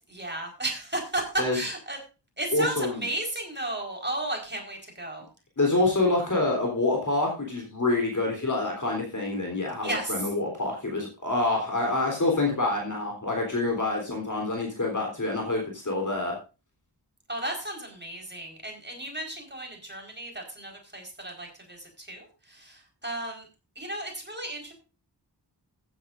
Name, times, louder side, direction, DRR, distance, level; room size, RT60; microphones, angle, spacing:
voice 1, 0.1-2.0 2.4-5.3 9.8-10.3 17.3-23.5 23.7-24.7, right 1 dB, 25° right, 2 dB, 4.6 m, -34 dB
voice 2, 2.5-3.0 5.6-16.4, left 2 dB, 45° left, 1 dB, 3.7 m, -27 dB
15.0 x 10.5 x 2.6 m, 0.31 s
wide cardioid pair, 65°, 43 cm